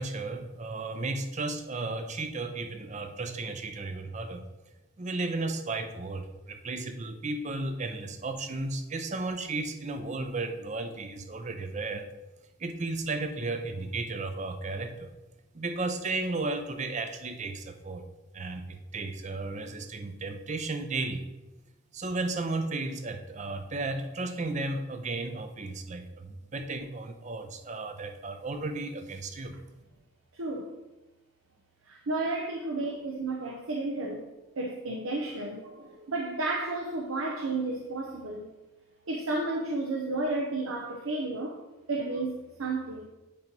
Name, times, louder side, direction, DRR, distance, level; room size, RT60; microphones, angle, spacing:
voice 1, 0.0-4.4 5.0-12.1 12.6-15.1 15.5-18.0 18.3-21.2 21.9-29.5, right 3 dB, 35° right, 7 dB, 0.5 m, -34 dB
voice 2, 30.3-30.7 31.9-34.2 34.6-38.5 39.1-41.6 41.9-43.1, right 2 dB, 90° right, 0 dB, 0.7 m, -32 dB
8.4 x 3.0 x 5.2 m, 1.1 s
head